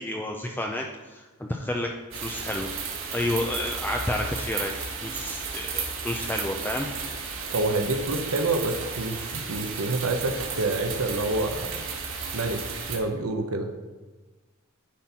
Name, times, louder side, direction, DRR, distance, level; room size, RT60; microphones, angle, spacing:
voice 1, 0.0-1.9 2.2-2.7 3.1-4.7 5.0-6.9, left 1 dB, 10° left, 1 dB, 0.4 m, -30 dB
sound 1, 2.1-13.0, right 5 dB, 60° right, 1.7 m, -34 dB
voice 2, 7.5-11.7 12.3-12.6 12.9-13.7, right 2 dB, 80° right, 5 dB, 0.8 m, -27 dB
10.0 x 4.4 x 5.6 m, 1.3 s
head